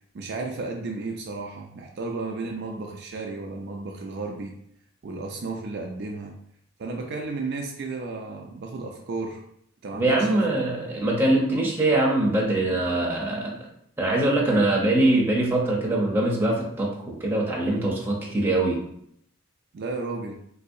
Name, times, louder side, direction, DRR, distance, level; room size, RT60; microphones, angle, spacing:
voice 1, 0.1-4.5 5.0-6.3 6.8-9.4 9.8-10.7 19.7-20.4, right 3 dB, 50° right, 1 dB, 0.3 m, -33 dB
voice 2, 9.9-13.6 14.0-18.8, right 2 dB, 10° right, -4 dB, 0.7 m, -23 dB
3.7 x 2.7 x 2.5 m, 0.71 s
head